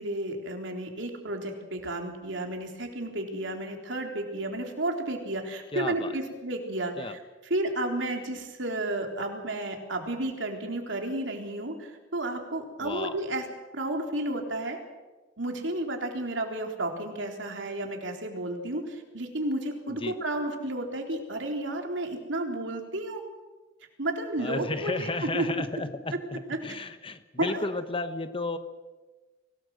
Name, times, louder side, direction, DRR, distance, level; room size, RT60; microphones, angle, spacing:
voice 1, 0.0-7.2 7.5-13.5 13.7-14.8 15.4-23.2 24.0-25.5 26.5-26.6 27.4-27.7, right 1 dB, 65° right, 3 dB, 3.9 m, -32 dB
voice 2, 5.7-6.1 7.0-7.2 12.8-13.2 19.9-20.2 24.4-28.6, left 2 dB, 25° left, 10 dB, 1.2 m, -33 dB
24.5 x 18.5 x 7.9 m, 1.2 s
head